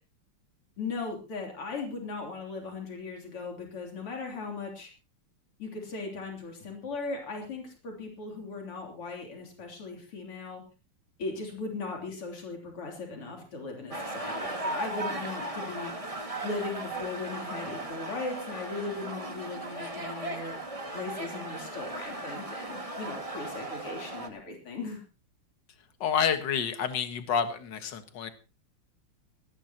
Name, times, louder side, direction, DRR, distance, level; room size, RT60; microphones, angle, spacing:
voice 1, 0.8-4.9 5.6-10.6 11.2-15.9 16.4-25.0, left 3 dB, 90° left, 1 dB, 4.4 m, -38 dB
sound 1, 13.9-24.3, right 2 dB, 15° right, 1.9 m, -37 dB
voice 2, 26.0-28.3, left 7 dB, 55° left, 9 dB, 2.1 m, -29 dB
20.0 x 16.5 x 2.9 m, 0.32 s
omnidirectional pair, 2.4 m